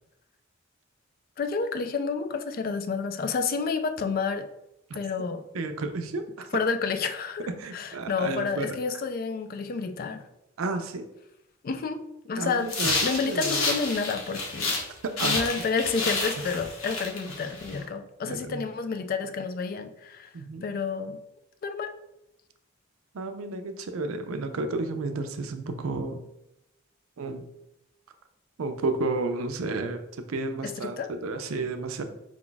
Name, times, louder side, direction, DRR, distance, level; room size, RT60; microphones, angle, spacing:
voice 1, 1.4-4.5 4.9-5.4 6.5-10.3 11.6-14.8 15.2-20.3 20.6-21.2 21.6-21.9 30.6-31.1, left 5 dB, 45° left, 9 dB, 0.3 m, -30 dB
voice 2, 5.5-6.5 7.6-8.8 10.6-11.1 12.4-12.9 13.2-13.7 15.2-15.4 16.4-16.5 18.2-18.6 20.3-20.7 23.1-26.2 27.2-27.4 28.6-30.0 30.3-32.0, right 3 dB, 85° right, 7 dB, 0.5 m, -32 dB
sound 1, 12.6-14.9 15.2-17.8, left 3 dB, 90° left, 1.0 m, -29 dB
4.8 x 2.3 x 3.8 m, 0.85 s
head